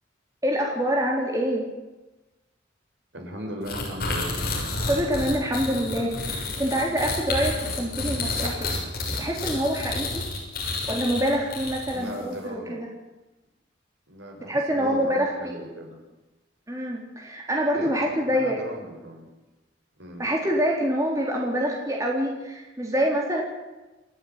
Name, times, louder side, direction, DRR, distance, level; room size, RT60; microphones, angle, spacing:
voice 1, 0.4-1.7 4.9-8.7 9.1-10.3 10.9-12.9 14.5-15.6 16.7-18.6 20.2-23.4, equal, 15° right, -1 dB, 3.7 m, -26 dB
voice 2, 3.1-4.4 11.9-12.8 14.1-16.0 17.7-17.9 18.3-19.3 20.0-20.3, equal, 75° right, 0 dB, 6.9 m, -37 dB
sound 1, 3.7-12.2, left 2 dB, 50° left, 6.8 m, -30 dB
28.0 x 10.5 x 9.9 m, 1.1 s
head